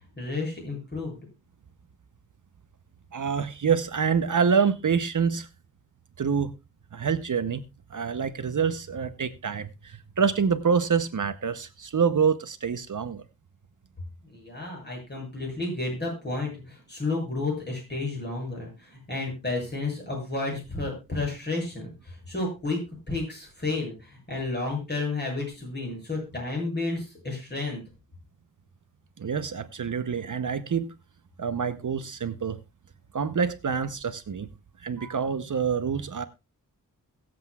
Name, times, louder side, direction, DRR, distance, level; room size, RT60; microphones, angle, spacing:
voice 1, 0.2-1.2 14.2-22.8 23.1-27.8, left 3 dB, 30° left, 7.4 m, -31 dB
voice 2, 3.1-5.5 6.2-6.5 6.9-7.6 7.9-13.2 29.2-30.9 31.4-32.6 33.1-34.5 34.8-36.2, right 6 dB, 55° right, 0.8 m, -26 dB
22.5 x 7.8 x 2.3 m
wide cardioid pair, 110°, 36 cm